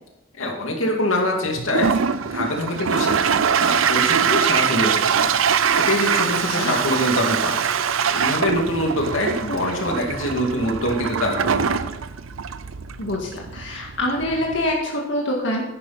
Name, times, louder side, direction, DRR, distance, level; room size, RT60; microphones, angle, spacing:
voice 1, 0.3-1.9 2.3-5.4 5.8-7.6 8.1-11.6, left 1 dB, 85° left, 1 dB, 2.3 m, -24 dB
Toilet flush, 1.6-14.7, right 7 dB, 85° right, 0.6 m, -23 dB
voice 2, 13.0-15.6, left 1 dB, 65° left, -2 dB, 2.0 m, -25 dB
10.5 x 10.5 x 4.2 m, 0.90 s
head